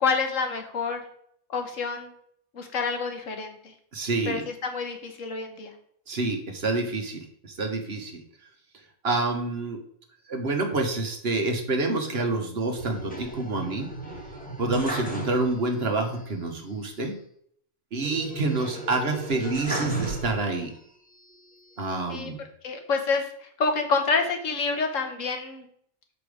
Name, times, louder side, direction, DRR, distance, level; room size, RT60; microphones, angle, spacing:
voice 1, 0.0-1.0 1.5-2.1 2.5-3.5 4.3-5.7 22.1-22.3 22.6-23.2 23.6-25.7, left 4 dB, 70° left, 5 dB, 1.5 m, -27 dB
voice 2, 3.9-4.4 6.1-8.2 9.0-9.8 10.3-13.9 14.6-17.1 17.9-20.7 21.8-22.4, right 3 dB, 50° right, 4 dB, 1.3 m, -28 dB
sound 1, 12.8-15.8 16.1-16.2 18.0-20.8 21.3-22.1, right 2 dB, 5° left, 1.2 m, -35 dB
6.8 x 5.1 x 4.9 m, 0.65 s
omnidirectional pair, 1.4 m